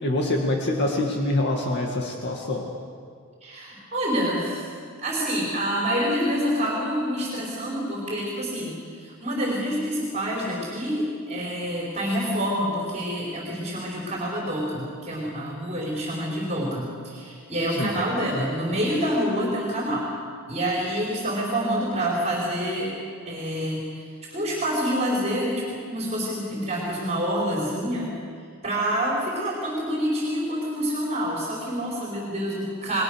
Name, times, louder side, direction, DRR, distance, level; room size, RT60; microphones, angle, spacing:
voice 1, 0.0-2.7 17.7-17.9, left 1 dB, 50° left, 0 dB, 2.2 m, -25 dB
voice 2, 3.4-4.7 5.0-20.1 20.5-22.9 23.2-28.1 28.6-33.0, equal, 30° right, -3 dB, 5.0 m, -27 dB
30.0 x 21.0 x 6.6 m, 2.1 s
head